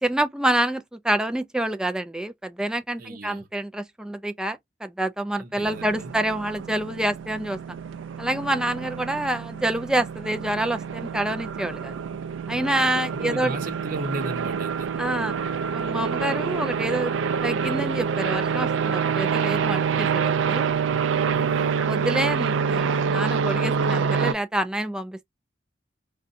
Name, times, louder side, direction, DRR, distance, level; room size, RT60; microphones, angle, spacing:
voice 1, 0.0-7.6 8.2-12.0 12.5-13.6 15.0-15.3 15.7-17.1 17.4-20.6 21.8-25.3, right 1 dB, 5° right, 0.3 m, -27 dB
voice 2, 3.0-3.5 5.4-6.1 12.5-14.9 21.3-21.8, right 2 dB, 50° right, 0.7 m, -36 dB
sound 1, 5.6-24.3, right 6 dB, 85° right, 0.4 m, -27 dB
3.8 x 2.2 x 2.5 m
head